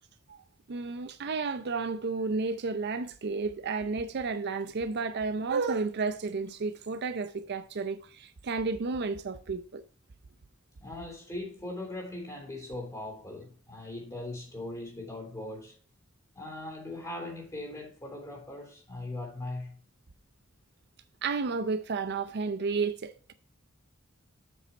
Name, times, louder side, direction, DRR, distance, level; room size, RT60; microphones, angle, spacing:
voice 1, 0.3-9.8 21.2-23.3, right 4 dB, 55° right, 0.5 m, -32 dB
voice 2, 10.8-15.8 16.3-19.7, left 2 dB, 15° left, 3.3 m, -40 dB
7.9 x 6.0 x 4.3 m
head